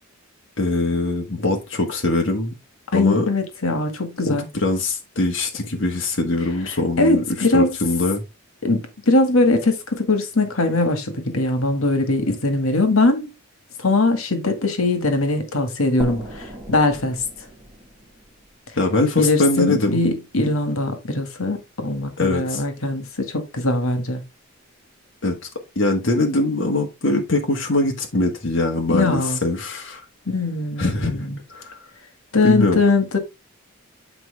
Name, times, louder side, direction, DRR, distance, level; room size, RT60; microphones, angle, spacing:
voice 1, 0.6-2.6 2.9-3.3 4.2-8.2 18.8-20.0 22.2-22.6 25.2-25.4 25.7-30.0 30.8-31.8 32.4-32.8, left 2 dB, 60° left, 1.6 m, -22 dB
voice 2, 2.9-4.5 7.0-7.8 8.6-13.3 13.8-17.2 19.2-24.2 28.9-29.4 30.3-31.4 32.3-33.2, left 2 dB, 85° left, 2.0 m, -21 dB
sound 1, 16.0-19.5, right 1 dB, 15° right, 2.9 m, -37 dB
9.1 x 4.8 x 3.5 m
head